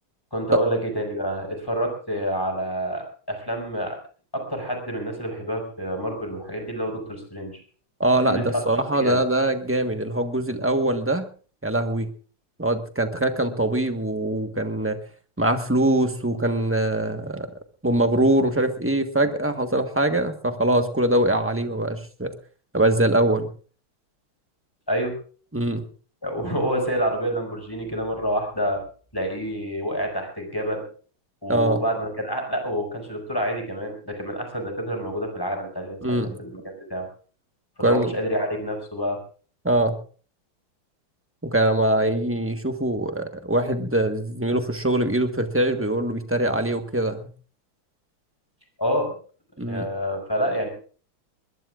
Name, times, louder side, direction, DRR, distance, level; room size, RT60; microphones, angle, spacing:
voice 1, 0.3-4.0 4.3-7.6 8.2-8.6 8.9-9.2 24.9-25.1 26.2-28.8 29.1-30.8 31.4-37.1 37.8-39.2 48.8-49.1 49.6-50.7, equal, 10° left, 3 dB, 5.3 m, -28 dB
voice 2, 8.0-11.3 11.6-12.1 12.6-15.0 15.4-17.5 17.8-22.3 22.7-23.5 25.5-25.8 31.5-31.8 36.0-36.4 37.8-38.1 39.6-40.0 41.4-47.3 49.6-49.9, right 1 dB, 10° right, 7 dB, 0.9 m, -23 dB
21.0 x 21.0 x 2.5 m, 0.41 s
omnidirectional pair, 2.4 m